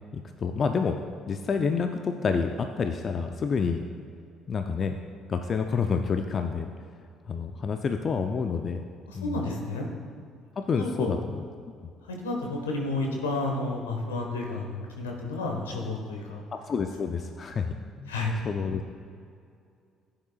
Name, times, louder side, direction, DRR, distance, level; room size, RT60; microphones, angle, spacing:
voice 1, 0.1-3.8 4.5-5.0 5.3-6.7 7.3-8.8 9.1-9.4 10.6-11.2 11.8-11.9 16.5-18.1 18.4-18.8, left 5 dB, 45° left, 6 dB, 0.6 m, -28 dB
voice 2, 9.1-9.9 10.7-11.2 12.0-16.4 18.1-18.3, left 2 dB, 85° left, 1 dB, 1.4 m, -31 dB
15.5 x 8.9 x 2.4 m, 2.3 s
hypercardioid pair, 50°, 0 cm